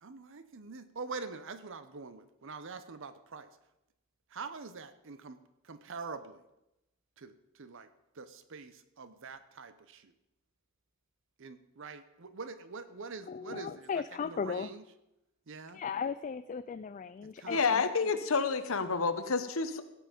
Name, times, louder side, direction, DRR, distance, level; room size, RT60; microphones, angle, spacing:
voice 1, 0.0-3.5 4.3-5.4 5.6-6.4 7.2-7.9 8.1-10.1 11.4-13.9 14.2-14.8 15.5-15.8 17.4-17.6, right 4 dB, 65° right, 12 dB, 0.8 m, -44 dB
voice 2, 13.3-14.7 15.7-17.8, left 6 dB, 35° left, 13 dB, 0.3 m, -37 dB
voice 3, 17.5-19.8, left 4 dB, 70° left, 9 dB, 1.0 m, -29 dB
17.0 x 7.5 x 5.2 m, 0.91 s
head